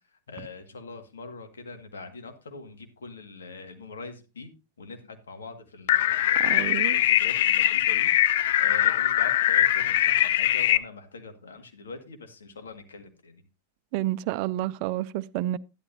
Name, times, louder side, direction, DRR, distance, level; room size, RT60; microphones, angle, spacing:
voice 1, 0.3-4.5 4.8-13.4, left 3 dB, 80° left, 1.9 m, -43 dB
sound 1, 5.9-10.8, left 13 dB, 60° left, 0.5 m, -22 dB
voice 2, 6.4-7.0 13.9-15.6, right 15 dB, 50° right, 0.4 m, -29 dB
11.5 x 11.5 x 2.7 m
hypercardioid pair, 95°, 0 cm